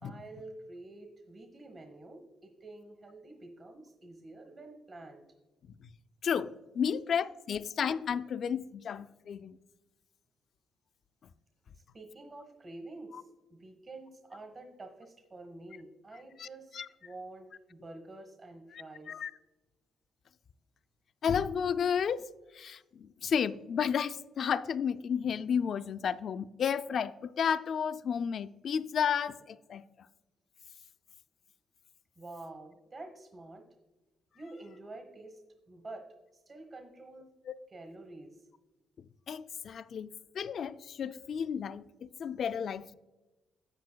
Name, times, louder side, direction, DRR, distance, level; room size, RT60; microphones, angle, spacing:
voice 1, 0.0-5.2 11.7-19.2 32.2-33.6 34.3-35.4 35.7-36.0 36.3-37.3 37.7-38.5, right 2 dB, 35° right, 1.1 m, -48 dB
voice 2, 6.2-9.6 13.1-13.2 16.4-16.5 16.7-16.9 18.7-19.3 21.2-22.2 22.5-29.8 39.3-42.9, left 7 dB, 60° left, 0.3 m, -32 dB
10.5 x 8.3 x 2.2 m
cardioid pair, 90°, 0 cm